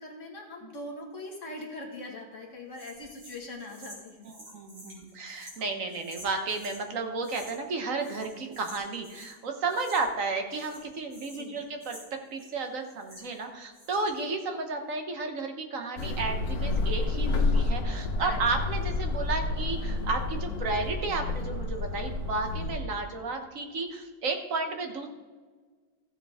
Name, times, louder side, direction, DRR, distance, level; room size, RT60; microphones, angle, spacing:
voice 1, 0.0-4.3 11.3-11.5 18.2-18.4, left 2 dB, 40° left, -1 dB, 2.0 m, -41 dB
sound 1, 2.7-6.8 7.2-7.7 8.0-9.4 9.7-10.2 10.5-13.4 13.7-14.3, equal, 85° right, 4.2 m, -50 dB
voice 2, 4.5-25.1, right 3 dB, 50° right, 5 dB, 1.3 m, -33 dB
sound 2, 16.0-22.8, left 3 dB, 60° left, 1.3 m, -29 dB
14.0 x 7.7 x 3.5 m, 1.4 s
omnidirectional pair, 2.0 m